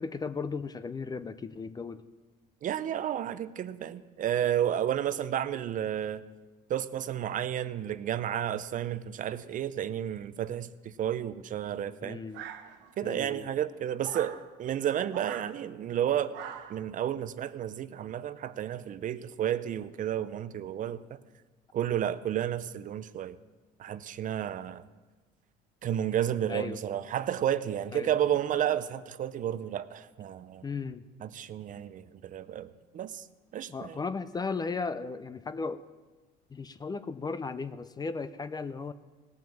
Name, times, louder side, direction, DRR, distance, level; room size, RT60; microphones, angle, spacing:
voice 1, 0.0-2.0 12.0-12.4 13.0-13.5 26.5-26.8 27.9-28.1 30.6-31.0 33.7-35.8 36.5-38.9, left 4 dB, 20° left, 13 dB, 0.5 m, -36 dB
voice 2, 2.6-6.2 6.7-12.2 13.0-16.3 16.7-21.2 21.7-23.4 23.8-24.8 25.8-30.6 31.2-33.3 33.5-34.0, right 10 dB, 45° right, 14 dB, 0.6 m, -31 dB
sound 1, 12.3-13.1 14.0-14.4 15.1-15.5 16.3-16.8, right 10 dB, 70° right, 1.0 m, -42 dB
18.0 x 6.1 x 7.1 m, 1.3 s
cardioid pair, 110°, 19 cm